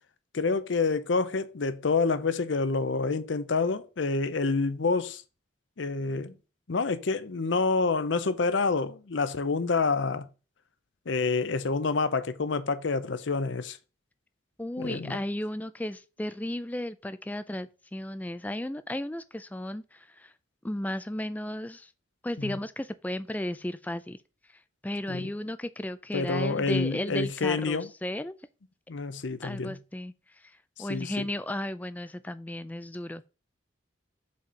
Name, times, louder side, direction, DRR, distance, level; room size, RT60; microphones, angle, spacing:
voice 1, 0.3-5.2 5.8-6.3 6.7-10.3 11.1-13.8 14.8-15.2 22.4-22.6 25.1-25.3 26.1-27.9 28.9-29.8 30.9-31.3, left 4 dB, 75° left, 0.6 m, -28 dB
voice 2, 14.6-20.3 20.6-21.9 22.2-24.2 24.8-28.3 29.4-30.1 30.4-33.3, left 1 dB, 10° left, 0.3 m, -34 dB
5.3 x 4.3 x 5.0 m
head